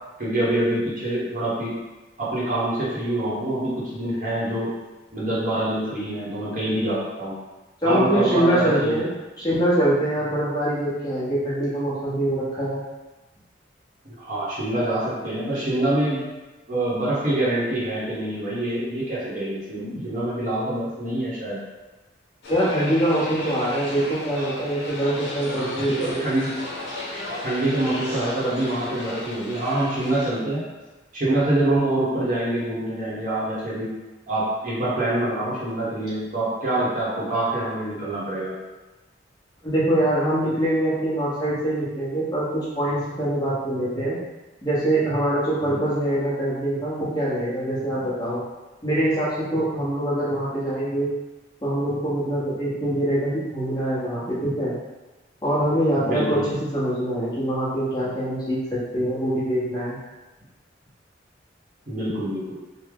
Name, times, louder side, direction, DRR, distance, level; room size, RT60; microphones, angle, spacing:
voice 1, 0.2-1.7 2.2-4.7 5.1-7.3 7.8-9.0 14.0-16.2 16.7-21.6 25.8-26.5 27.4-30.6 31.1-33.9 34.3-38.5 45.6-45.8 55.9-56.5 61.9-62.6, right 1 dB, 45° right, -8 dB, 1.0 m, -25 dB
voice 2, 7.8-12.8 22.5-26.3 39.6-44.2 44.6-48.4 48.8-51.1 51.6-54.7 55.4-60.0, right 1 dB, 20° left, -9 dB, 1.0 m, -24 dB
sound 1, 22.4-30.3, left 2 dB, 70° left, 0.8 m, -34 dB
3.3 x 2.1 x 3.6 m, 1.1 s
head